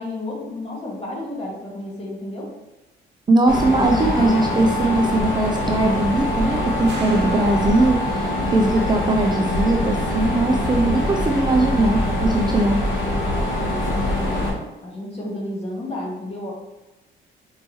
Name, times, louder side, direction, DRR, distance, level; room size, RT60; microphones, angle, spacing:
voice 1, 0.0-2.5 13.3-16.5, left 1 dB, 30° left, -3 dB, 1.4 m, -32 dB
voice 2, 3.3-12.8, right 2 dB, 20° right, 1 dB, 0.4 m, -20 dB
Mechanisms, 3.5-14.5, left 1 dB, 75° left, 1.3 m, -23 dB
sound 1, 6.9-8.4, right 3 dB, 60° right, 0.9 m, -40 dB
4.5 x 2.9 x 3.0 m, 1.0 s
cardioid pair, 90°, 20 cm